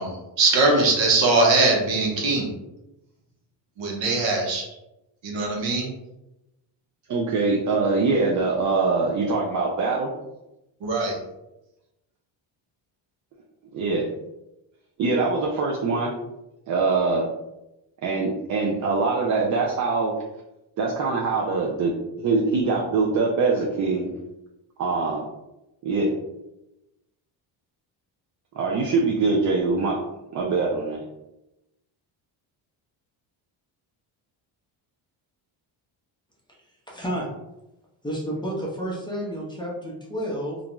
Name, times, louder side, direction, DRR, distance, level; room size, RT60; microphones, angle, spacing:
voice 1, 0.0-2.5 3.8-4.7 5.2-5.9 10.8-11.2, right 3 dB, 70° right, -1 dB, 0.9 m, -21 dB
voice 2, 7.1-10.1 13.7-14.0 15.0-16.1 16.7-17.2 18.0-20.1 20.8-21.9 22.2-24.1 24.8-25.2 25.8-26.1 28.6-30.0 30.3-31.0, right 3 dB, 40° right, -2 dB, 0.4 m, -23 dB
voice 3, 36.9-37.3 38.0-40.6, equal, 10° left, -4 dB, 0.6 m, -30 dB
2.5 x 2.1 x 2.9 m, 0.94 s
cardioid pair, 100°, 47 cm